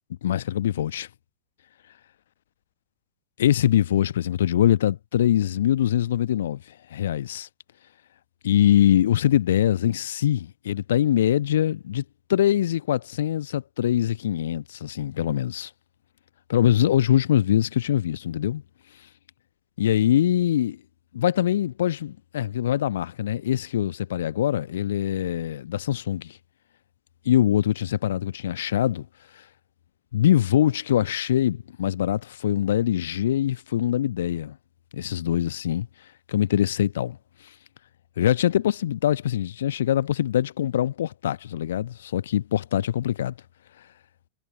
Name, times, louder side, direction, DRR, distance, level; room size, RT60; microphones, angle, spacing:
voice 1, 0.2-1.1 3.4-6.6 6.9-7.5 8.4-12.0 12.3-15.7 16.5-18.6 19.8-20.8 21.1-26.4 27.2-29.1 30.1-34.6 34.9-35.9 36.3-37.2 38.2-43.4, left 11 dB, 60° left, 1.1 m, -23 dB
figure-of-eight pair, 90°, 0 cm